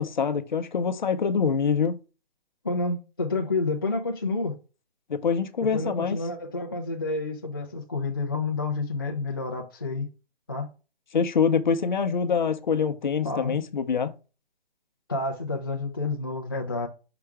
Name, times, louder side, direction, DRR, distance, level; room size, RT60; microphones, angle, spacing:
voice 1, 0.0-1.9 5.1-6.2 11.1-14.1, left 6 dB, 50° left, 0.7 m, -25 dB
voice 2, 2.6-4.6 5.6-10.1 10.5-10.7 13.2-13.6 15.1-16.9, left 3 dB, 25° left, 0.4 m, -29 dB
5.8 x 4.8 x 3.3 m
hypercardioid pair, 170°, 30 cm